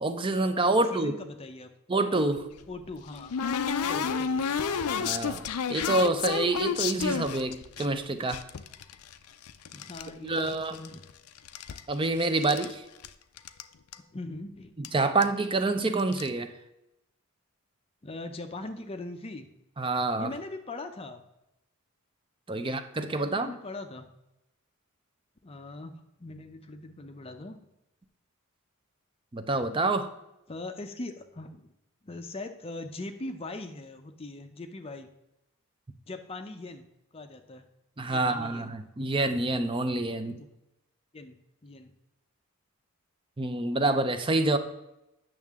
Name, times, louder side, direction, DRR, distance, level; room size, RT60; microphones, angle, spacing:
voice 1, 0.0-1.1 1.9-2.5 5.0-5.4 5.7-8.4 10.2-10.8 11.9-12.8 14.8-16.5 19.8-20.3 22.5-23.5 29.3-30.1 38.0-40.4 43.4-44.6, right 2 dB, 20° right, 9 dB, 0.5 m, -27 dB
voice 2, 0.7-1.7 2.7-3.3 3.8-4.8 9.7-11.0 14.1-14.8 18.0-19.5 20.2-21.2 22.5-22.7 23.2-24.1 25.4-25.9 26.2-27.6 30.5-31.7 32.0-35.1 36.1-36.9 37.1-37.6 38.1-38.7 40.4-40.5 41.1-41.9, left 2 dB, 25° left, 7 dB, 0.5 m, -41 dB
sound 1, 2.4-7.9 8.3-10.1 10.4-11.1 11.4-12.7 13.0-13.1 13.4-13.6 13.9-14.0 14.8-14.9 15.2-15.5 16.0-16.3, left 6 dB, 85° left, 0.5 m, -31 dB
8.9 x 6.5 x 3.6 m, 0.89 s
head